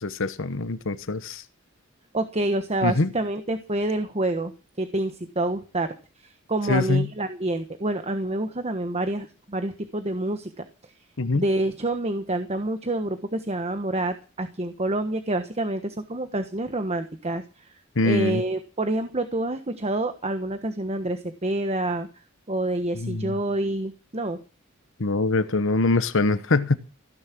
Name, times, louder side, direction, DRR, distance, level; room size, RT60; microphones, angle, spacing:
voice 1, 0.0-1.4 2.8-3.1 6.7-7.1 11.2-11.4 18.0-18.4 23.0-23.4 25.0-26.8, left 2 dB, 65° left, 1.1 m, -23 dB
voice 2, 2.1-4.5 4.8-5.9 6.2-10.7 11.3-17.7 18.0-22.1 22.5-24.4, right 2 dB, 30° right, 1.3 m, -27 dB
16.0 x 10.5 x 6.2 m
head